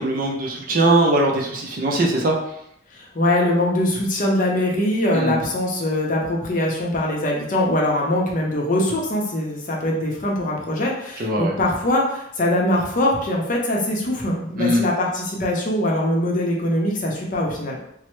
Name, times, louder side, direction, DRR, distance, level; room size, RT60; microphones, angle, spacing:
voice 1, 0.0-2.3 5.1-5.3 11.2-11.5 14.6-14.8, right 1 dB, 45° right, 0 dB, 0.5 m, -20 dB
voice 2, 2.9-17.8, left 1 dB, 45° left, -2 dB, 0.6 m, -22 dB
3.1 x 2.0 x 3.0 m, 0.74 s
head